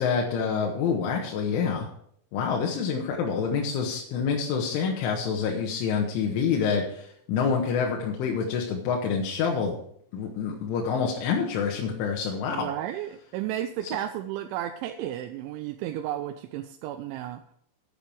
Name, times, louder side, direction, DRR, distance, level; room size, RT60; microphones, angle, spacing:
voice 1, 0.0-1.9 2.3-9.8 10.1-12.7, left 6 dB, 80° left, -1 dB, 3.9 m, -27 dB
voice 2, 12.5-17.4, right 12 dB, 85° right, 6 dB, 3.0 m, -33 dB
11.0 x 8.9 x 4.8 m, 0.65 s
omnidirectional pair, 5.5 m